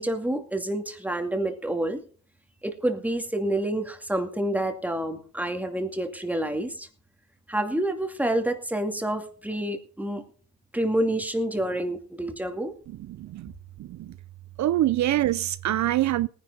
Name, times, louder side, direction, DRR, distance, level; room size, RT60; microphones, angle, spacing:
voice 1, 0.0-2.0 2.6-6.9 7.5-10.2 10.7-12.7, right 1 dB, 5° right, 2.4 m, -28 dB
voice 2, 13.1-13.5 13.8-14.2 14.6-16.3, right 14 dB, 70° right, 0.6 m, -25 dB
18.5 x 10.5 x 4.1 m
cardioid pair, 90°, 30 cm